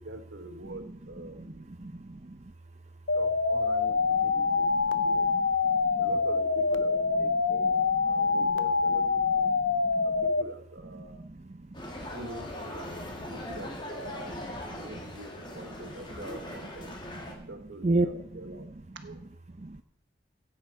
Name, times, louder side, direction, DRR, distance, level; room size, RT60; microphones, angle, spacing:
voice 1, 0.0-1.7 3.1-5.4 6.0-9.5 10.0-11.2 12.0-13.0 13.3-14.4 14.6-16.9 17.5-19.2, right 2 dB, 80° right, 8 dB, 1.3 m, -45 dB
voice 2, 1.8-2.4 4.7-6.1 8.0-8.4 9.5-10.1 10.9-12.1 14.9-15.0 17.3-17.5 17.8-18.1 19.6-19.8, right 2 dB, 35° right, 8 dB, 0.6 m, -34 dB
sound 1, 3.1-10.4, left 4 dB, 85° left, 0.7 m, -25 dB
sound 2, 11.7-17.3, left 1 dB, 25° left, 2.0 m, -40 dB
16.0 x 8.8 x 4.6 m, 0.75 s
head